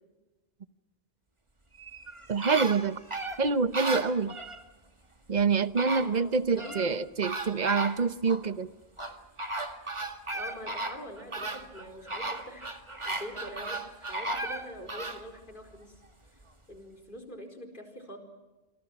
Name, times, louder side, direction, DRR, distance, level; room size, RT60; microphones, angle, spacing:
sound 1, 1.7-4.6 5.4-5.5 5.8-6.9 7.2-8.4 9.0-15.2 15.7-15.8, right 2 dB, 25° right, 2.0 m, -35 dB
voice 1, 2.3-3.0 3.4-4.4 5.3-8.7, right 5 dB, 40° right, 13 dB, 1.0 m, -26 dB
voice 2, 6.0-6.8 10.3-16.0 16.7-18.2, equal, 45° left, 3 dB, 4.7 m, -45 dB
28.0 x 24.0 x 6.0 m, 1.1 s
omnidirectional pair, 1.1 m